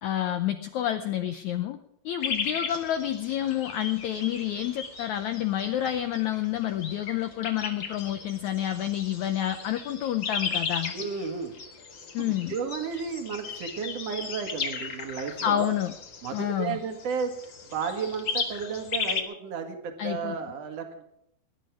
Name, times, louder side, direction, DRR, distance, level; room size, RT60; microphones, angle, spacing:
voice 1, 0.0-1.8 2.0-10.9 12.1-12.5 15.4-15.9 16.3-16.8 20.0-20.4, left 11 dB, 80° left, 8 dB, 1.7 m, -29 dB
sound 1, 2.2-19.2, left 5 dB, 45° left, 1.6 m, -36 dB
voice 2, 10.9-11.5 12.2-15.7 16.2-17.3 17.7-21.0, right 6 dB, 50° right, 5 dB, 2.7 m, -33 dB
20.0 x 10.5 x 4.8 m, 0.78 s
omnidirectional pair, 4.3 m